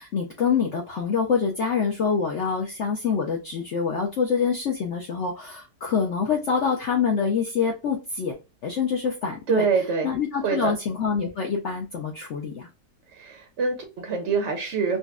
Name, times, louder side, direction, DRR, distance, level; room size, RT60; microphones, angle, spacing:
voice 1, 0.0-8.4 8.6-9.7 10.0-12.7, left 6 dB, 70° left, 1 dB, 0.7 m, -25 dB
voice 2, 9.5-10.1 10.4-10.7 13.1-15.0, right 5 dB, 60° right, 3 dB, 0.7 m, -25 dB
4.0 x 2.2 x 2.3 m, 0.27 s
omnidirectional pair, 1.9 m